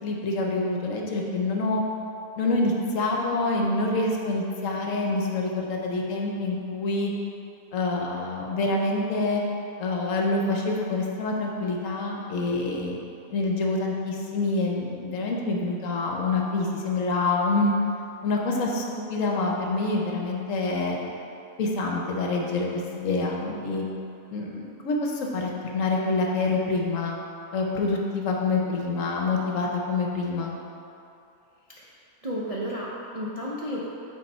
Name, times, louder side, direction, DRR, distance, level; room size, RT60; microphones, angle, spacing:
voice 1, 0.0-1.8 2.4-7.1 7.7-9.4 9.8-13.0 13.3-17.7 18.2-21.0 21.6-23.8 24.3-27.2 27.5-30.5, left 3 dB, 65° left, -1 dB, 1.1 m, -26 dB
voice 2, 31.8-33.9, equal, 45° right, -7 dB, 0.4 m, -33 dB
6.9 x 4.1 x 4.2 m, 2.7 s
omnidirectional pair, 1.5 m